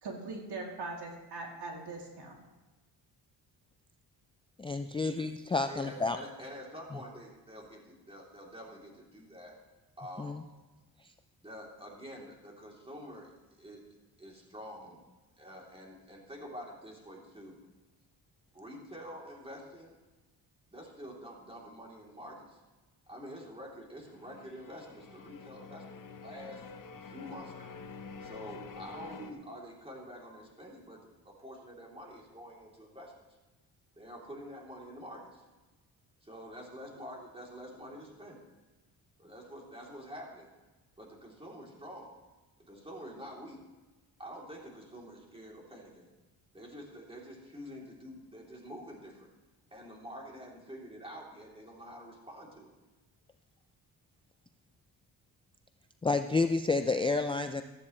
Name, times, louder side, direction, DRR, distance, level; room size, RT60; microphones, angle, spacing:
voice 1, 0.0-2.4, right 3 dB, 70° right, -1 dB, 3.0 m, -41 dB
voice 2, 4.6-6.2 10.2-10.4 56.0-57.6, left 3 dB, 15° left, 7 dB, 0.4 m, -30 dB
voice 3, 5.7-9.5 10.0-10.5 11.4-13.8 14.2-15.0 15.4-17.6 18.5-19.9 20.7-22.6 23.1-26.6 27.1-27.8 28.2-33.3 34.0-35.4 36.2-38.4 39.2-40.5 41.0-42.2 42.6-43.6 44.2-46.1 46.5-49.3 49.7-52.7, equal, 15° right, -2 dB, 3.3 m, -47 dB
sound 1, 24.0-29.3, left 5 dB, 50° left, 1.1 m, -47 dB
14.5 x 13.0 x 3.2 m, 1.1 s
cardioid pair, 105°, 41 cm